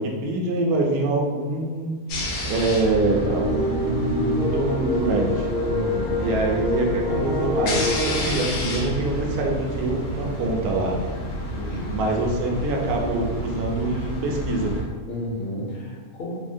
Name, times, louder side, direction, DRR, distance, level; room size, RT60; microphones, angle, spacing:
voice 1, 0.0-2.0 2.4-5.5 6.2-11.0 11.9-14.7, right 2 dB, 75° right, 0 dB, 1.0 m, -25 dB
sound 1, 2.1-14.8, left 1 dB, 90° left, 1.2 m, -30 dB
sound 2, 3.0-8.3, left 1 dB, 10° right, 0.4 m, -26 dB
voice 2, 5.7-6.4 11.4-12.0 15.1-16.3, equal, 55° left, -5 dB, 0.6 m, -32 dB
3.4 x 2.1 x 2.6 m, 1.5 s
omnidirectional pair, 1.6 m